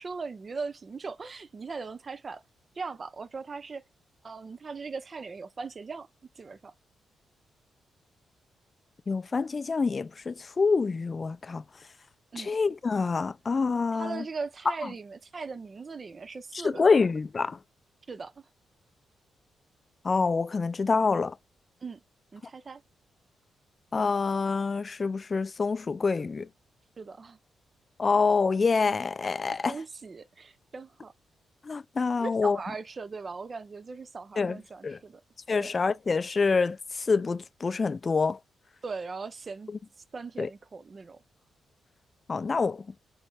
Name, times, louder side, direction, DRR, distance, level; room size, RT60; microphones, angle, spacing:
voice 1, 0.0-2.4 2.7-3.8 4.2-6.1 6.4-6.7 12.3-12.6 13.9-16.9 18.1-18.5 21.8-22.0 22.3-22.8 27.0-27.4 29.6-31.1 32.2-35.2 35.5-35.7 38.8-41.2, right 4 dB, 45° right, 0.5 m, -39 dB
voice 2, 9.1-11.6 12.4-14.2 16.6-17.6 20.0-21.3 23.9-26.5 28.0-29.8 31.6-32.6 34.4-34.6 34.8-35.0 35.5-38.4 40.4-40.5 42.3-42.8, left 4 dB, 40° left, 0.4 m, -26 dB
4.3 x 2.0 x 2.9 m
hypercardioid pair, 45°, 0 cm